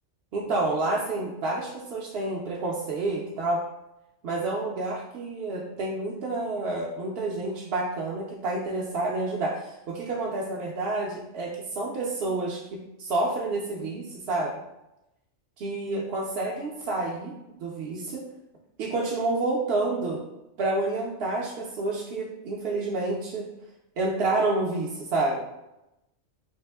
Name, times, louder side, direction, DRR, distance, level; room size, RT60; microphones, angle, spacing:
voice 1, 0.3-3.6 4.2-14.5 15.6-17.3 17.6-18.2 18.8-20.2 20.6-23.5 24.0-25.4, right 2 dB, 60° right, -4 dB, 0.7 m, -29 dB
3.5 x 2.5 x 3.3 m, 0.91 s
omnidirectional pair, 1.3 m